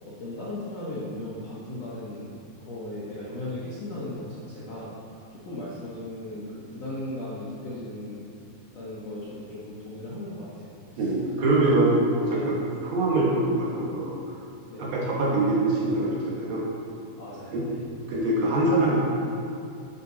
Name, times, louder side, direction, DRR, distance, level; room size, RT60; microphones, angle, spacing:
voice 1, 0.0-2.3 2.6-4.9 5.3-8.3 8.7-11.1 12.3-12.4 14.7-14.9 17.1-17.8, left 1 dB, 60° left, -9 dB, 1.7 m, -37 dB
voice 2, 11.0-14.2 14.8-16.6 17.5-17.6 18.1-19.0, right 2 dB, 65° right, -5 dB, 3.3 m, -24 dB
10.5 x 8.0 x 4.2 m, 2.6 s
omnidirectional pair, 4.9 m